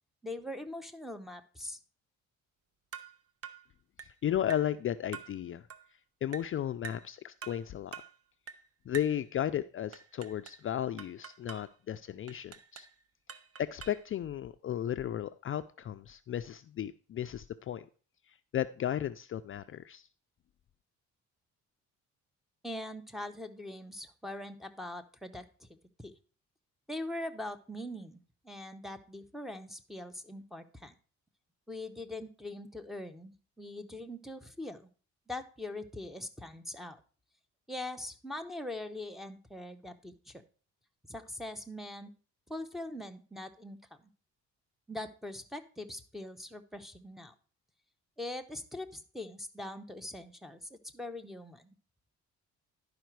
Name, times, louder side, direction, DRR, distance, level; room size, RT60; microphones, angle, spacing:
voice 1, 0.2-1.8 22.6-25.7 26.0-26.1 26.9-30.9 31.7-34.9 35.3-37.0 37.7-40.4 41.1-42.1 42.5-43.8 44.9-47.3 48.2-51.7, left 1 dB, ahead, 4 dB, 0.9 m, -42 dB
sound 1, 2.9-3.2 3.4-3.7 4.0-4.2 4.5-4.7 5.1-5.4 5.7-5.9 6.3-6.5 6.8-7.1 7.4-7.6 7.9-8.1 8.5-8.7 8.9-9.2 9.9-10.6 11.0-11.7 12.3-12.9 13.3-14.1, right 7 dB, 50° right, 0.8 m, -46 dB
voice 2, 4.2-5.7 6.2-7.9 8.9-12.9 13.6-17.9 18.5-20.1, left 10 dB, 45° left, 10 dB, 0.4 m, -34 dB
11.5 x 5.0 x 4.6 m, 0.38 s
cardioid pair, 90°, 30 cm